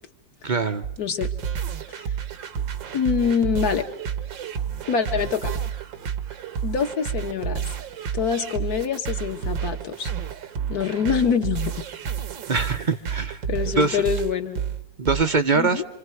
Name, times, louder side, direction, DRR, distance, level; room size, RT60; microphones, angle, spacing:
voice 1, 0.4-0.8 12.5-13.4 13.7-14.0 15.0-15.8, right 4 dB, 45° right, 8 dB, 0.6 m, -23 dB
sound 1, 0.8-15.2, right 8 dB, 85° right, 2.0 m, -30 dB
voice 2, 1.0-1.3 1.9-2.0 2.9-3.9 4.9-5.5 6.6-7.6 8.1-10.1 10.7-11.8 13.5-14.6 15.6-15.9, left 7 dB, 55° left, 6 dB, 1.8 m, -25 dB
27.5 x 26.0 x 4.7 m, 0.84 s
omnidirectional pair, 2.0 m